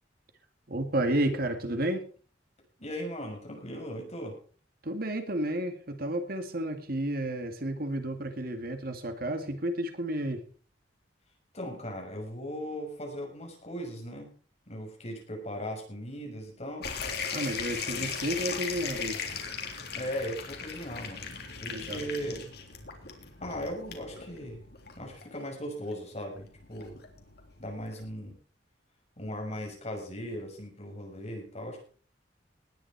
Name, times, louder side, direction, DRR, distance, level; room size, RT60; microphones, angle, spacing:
voice 1, 0.7-2.0 4.8-10.4 17.3-19.2 21.7-22.1, right 1 dB, 55° right, 7 dB, 2.2 m, -31 dB
voice 2, 2.8-4.4 11.5-14.3 14.7-16.9 17.9-18.1 19.9-21.3 21.6-22.6 23.4-24.6 25.0-27.0 27.6-28.4 29.2-31.8, equal, 35° left, 2 dB, 6.3 m, -38 dB
sound 1, 16.8-28.1, left 6 dB, 60° left, 3.4 m, -38 dB
19.5 x 10.5 x 4.7 m, 0.41 s
head